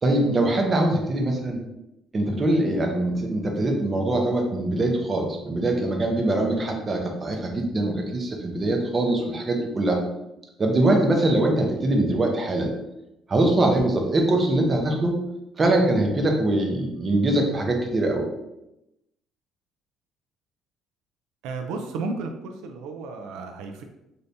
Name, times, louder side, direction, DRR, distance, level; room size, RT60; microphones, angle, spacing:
voice 1, 0.0-1.6 2.1-10.0 10.6-12.7 13.3-15.2 15.6-18.2, right 1 dB, 25° right, 2 dB, 0.6 m, -23 dB
voice 2, 21.4-23.8, right 3 dB, 90° right, 4 dB, 0.3 m, -33 dB
2.6 x 2.6 x 3.3 m, 0.89 s
cardioid pair, 135°, 0 cm